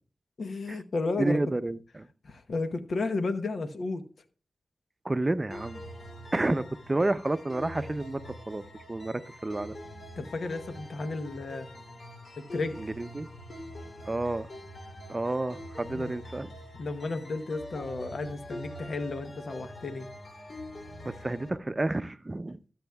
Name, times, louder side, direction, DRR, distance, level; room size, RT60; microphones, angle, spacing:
voice 1, 0.4-1.4 2.2-4.0 10.2-11.7 12.4-12.8 15.9-16.1 16.7-20.1, left 3 dB, 80° left, 0.9 m, -33 dB
voice 2, 1.2-2.1 5.0-5.8 6.3-8.6 8.9-9.8 12.8-13.3 14.0-14.5 15.1-16.5 21.0-22.6, right 2 dB, 30° right, 0.5 m, -30 dB
sound 1, 5.5-21.5, equal, 60° left, 2.9 m, -44 dB
22.0 x 7.8 x 2.3 m
cardioid pair, 55°, 0 cm